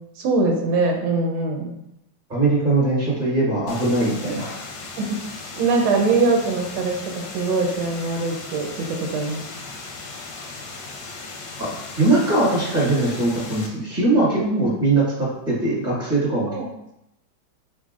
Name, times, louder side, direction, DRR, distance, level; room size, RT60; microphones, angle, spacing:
voice 1, 0.2-1.7 5.0-5.2 5.6-9.4 14.4-14.7 16.5-16.7, right 3 dB, 90° right, 1 dB, 1.5 m, -22 dB
voice 2, 2.3-4.6 11.6-11.7 12.0-16.5, right 2 dB, 25° right, -6 dB, 1.1 m, -21 dB
sound 1, 3.7-13.7, left 3 dB, 70° left, 1.0 m, -37 dB
4.0 x 3.6 x 2.4 m, 0.84 s
omnidirectional pair, 2.2 m